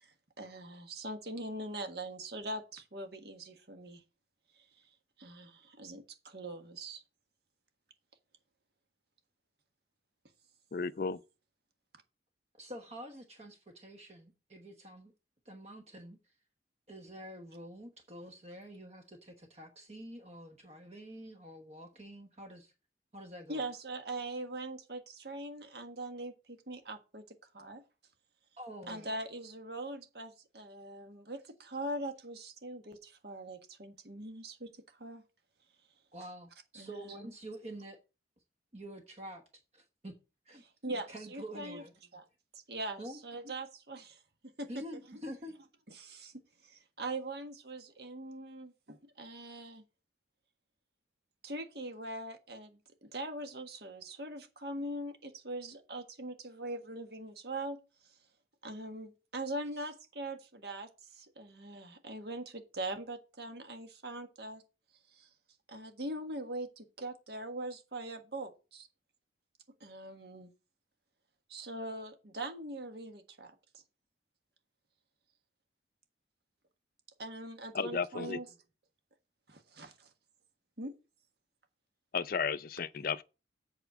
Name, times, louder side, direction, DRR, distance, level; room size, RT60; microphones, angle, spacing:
voice 1, 0.0-4.0 4.5-4.6 5.2-7.0 23.5-27.2 27.5-27.8 28.9-35.2 36.8-37.3 40.6-41.8 42.1-42.2 42.5-44.2 44.6-44.8 45.9-46.3 46.6-49.8 51.4-57.8 58.0-58.1 58.6-64.6 65.1-65.3 65.7-68.9 69.8-70.5 71.5-73.8 77.2-78.5 79.5-80.1 80.8-80.9, right 1 dB, 60° right, 1.6 m, -42 dB
voice 2, 10.7-11.2 77.7-78.4 82.1-83.2, left 5 dB, 50° left, 0.4 m, -33 dB
voice 3, 12.6-15.1 15.4-16.2 16.9-22.7 23.1-23.6 28.6-29.1 36.1-38.0 38.7-40.1 40.4-40.6 41.1-41.9 43.0-43.2 44.7-45.5, right 1 dB, 35° right, 1.1 m, -47 dB
8.0 x 4.4 x 7.0 m
head